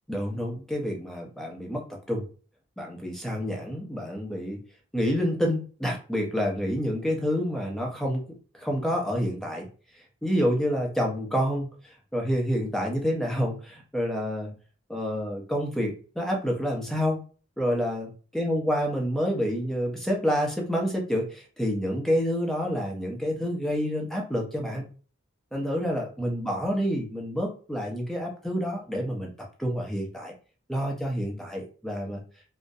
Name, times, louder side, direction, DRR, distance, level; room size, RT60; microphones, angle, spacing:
voice 1, 0.1-2.2 2.8-4.6 4.9-8.3 8.5-9.7 10.2-14.5 14.9-17.2 17.6-24.9 25.5-29.3 29.6-30.3 30.7-32.2, equal, ahead, 0 dB, 0.5 m, -28 dB
2.3 x 2.0 x 2.6 m, 0.39 s
head